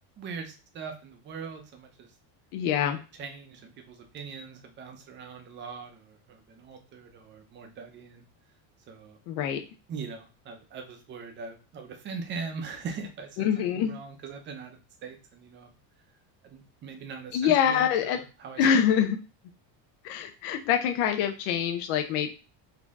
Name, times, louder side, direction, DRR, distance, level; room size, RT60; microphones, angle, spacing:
voice 1, 0.2-2.1 2.9-8.2 8.9-9.2 9.9-15.8 16.4-18.7, right 5 dB, 25° right, 4 dB, 0.5 m, -41 dB
voice 2, 2.5-3.0 9.3-9.6 13.4-14.0 17.3-18.2 18.6-19.2 20.0-22.3, left 8 dB, 85° left, 6 dB, 0.8 m, -25 dB
4.2 x 2.7 x 3.5 m, 0.32 s
cardioid pair, 175°, 48 cm